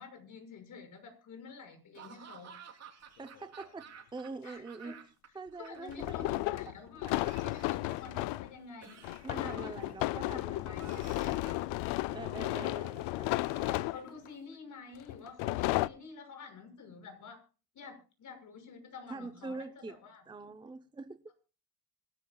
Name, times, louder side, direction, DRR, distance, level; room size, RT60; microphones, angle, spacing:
voice 1, 0.0-2.5 4.4-5.0 5.6-7.1 7.4-9.7 10.2-11.3 13.6-17.4 17.7-20.2, left 5 dB, 45° left, 6.4 m, -49 dB
Laughter / Cough, 1.9-5.3 5.5-6.4 7.1-8.2 8.8-10.0 10.8-11.7 12.3-12.9 13.4-14.6, right 7 dB, 40° right, 3.7 m, -53 dB
sound 1, 3.2-3.3 5.9-8.5 9.0-14.3 15.1-15.9, left 18 dB, 80° left, 0.7 m, -33 dB
voice 2, 3.2-5.0 5.3-6.7 9.2-10.9 12.1-13.3 19.1-20.0 20.3-21.3, right 3 dB, 10° right, 0.7 m, -44 dB
25.5 x 12.5 x 2.3 m
cardioid pair, 130°, 42 cm